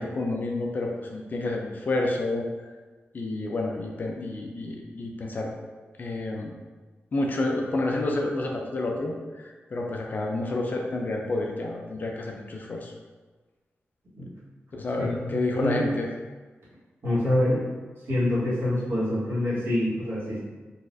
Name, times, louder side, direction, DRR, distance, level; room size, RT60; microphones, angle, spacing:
voice 1, 0.0-2.4 3.1-5.5 6.0-6.5 7.1-12.9 14.7-16.1, left 2 dB, 45° left, 1 dB, 0.4 m, -29 dB
voice 2, 15.0-15.8 17.0-17.6 18.1-20.4, left 1 dB, 60° right, -9 dB, 1.2 m, -26 dB
3.9 x 2.4 x 2.5 m, 1.3 s
wide cardioid pair, 170°, 4 cm